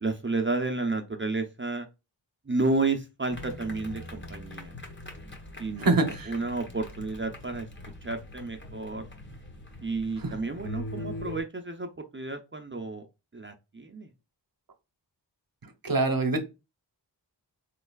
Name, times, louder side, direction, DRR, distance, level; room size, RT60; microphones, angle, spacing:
voice 1, 0.0-1.9 2.5-4.7 5.6-7.7 8.0-9.1 9.8-13.1 13.3-14.1, right 3 dB, 30° right, 0.5 m, -31 dB
sound 1, 3.3-11.4, left 1 dB, 25° left, 0.8 m, -42 dB
voice 2, 5.8-6.3 10.2-10.3 15.8-16.4, right 3 dB, 50° right, 0.8 m, -24 dB
3.7 x 3.1 x 2.3 m
wide cardioid pair, 55°, 43 cm